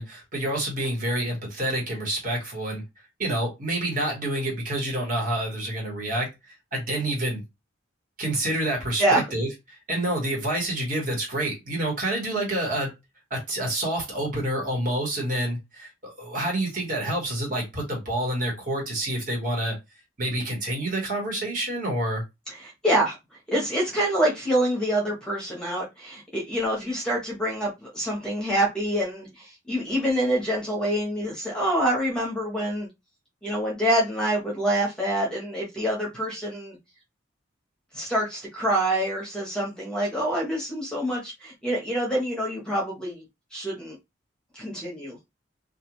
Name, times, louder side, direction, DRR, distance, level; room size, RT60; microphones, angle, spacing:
voice 1, 0.0-2.8 3.2-7.4 8.2-12.9 13.3-19.8 20.2-22.2, right 1 dB, 45° right, 1.2 m, -28 dB
voice 2, 22.5-23.2 23.5-32.9 33.4-36.8 37.9-43.2 43.5-44.0 44.5-45.2, right 1 dB, 5° left, 0.8 m, -26 dB
2.4 x 2.3 x 2.9 m
head